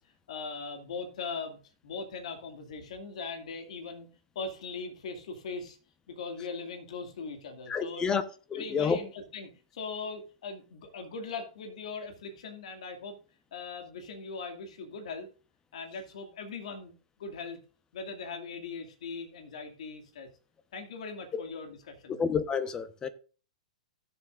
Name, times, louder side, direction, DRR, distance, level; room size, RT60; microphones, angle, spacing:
voice 1, 0.3-1.6 1.8-4.1 4.4-5.8 6.1-8.1 8.5-13.2 13.5-15.3 15.7-16.9 17.2-17.6 17.9-20.3 20.7-22.2, left 4 dB, 65° left, 2.4 m, -40 dB
voice 2, 7.7-8.2 8.5-9.0 22.1-23.1, left 6 dB, 20° left, 1.0 m, -29 dB
16.5 x 7.3 x 2.6 m
hypercardioid pair, 120°, 4 cm